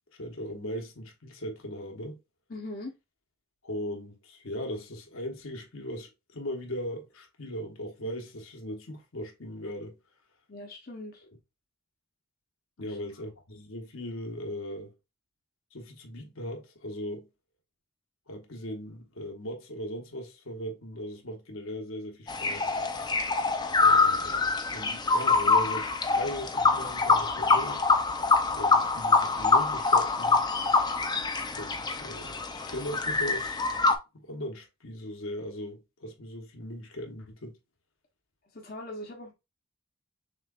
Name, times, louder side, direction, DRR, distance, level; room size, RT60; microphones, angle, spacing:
voice 1, 0.1-2.2 3.6-10.0 12.8-14.9 15.7-17.3 18.3-22.7 23.8-27.9 28.5-30.4 31.5-33.6 34.1-37.6, equal, 70° left, 1.1 m, -38 dB
voice 2, 2.5-2.9 10.5-11.2 12.8-13.0 38.5-39.3, left 1 dB, 45° left, 0.9 m, -41 dB
sound 1, 22.3-34.0, left 4 dB, 20° left, 0.5 m, -25 dB
6.3 x 3.1 x 2.4 m
head